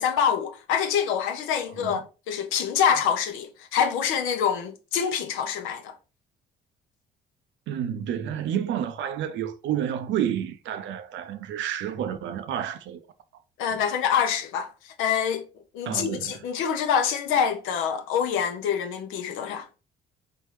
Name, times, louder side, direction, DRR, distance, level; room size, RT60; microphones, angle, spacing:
voice 1, 0.0-5.9 13.6-14.7 15.0-15.5 15.7-19.7, left 8 dB, 80° left, 0.8 m, -26 dB
voice 2, 7.7-13.0 15.9-16.4, right 9 dB, 70° right, 0.6 m, -30 dB
4.2 x 3.4 x 3.2 m
supercardioid pair, 60°, 20 cm